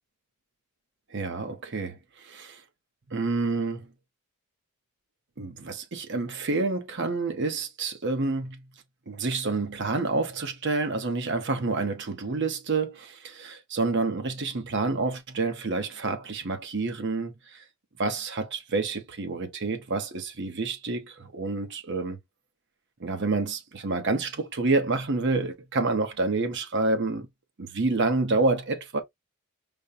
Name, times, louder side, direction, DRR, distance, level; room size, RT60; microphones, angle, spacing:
voice 1, 1.1-2.0 2.2-2.6 3.1-3.9 5.4-8.6 9.1-17.6 18.0-22.2 23.0-27.3 27.6-29.0, right 3 dB, 50° right, 0.9 m, -28 dB
5.2 x 2.2 x 2.6 m
head